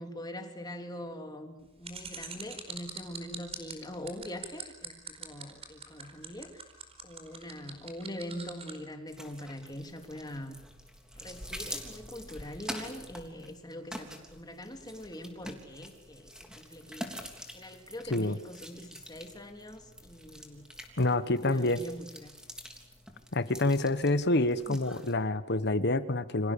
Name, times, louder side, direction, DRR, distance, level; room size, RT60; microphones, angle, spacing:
voice 1, 0.0-6.6 7.0-10.6 11.1-17.2 17.5-20.6 21.1-22.4 23.9-24.2, left 1 dB, 20° left, 5 dB, 3.0 m, -43 dB
sound 1, 1.8-8.8, right 6 dB, 30° right, 4.7 m, -42 dB
sound 2, 9.1-25.1, equal, 5° right, 3.4 m, -46 dB
voice 2, 21.0-21.8 23.3-26.5, left 2 dB, 55° left, 13 dB, 1.4 m, -27 dB
29.5 x 26.5 x 7.0 m, 0.96 s
head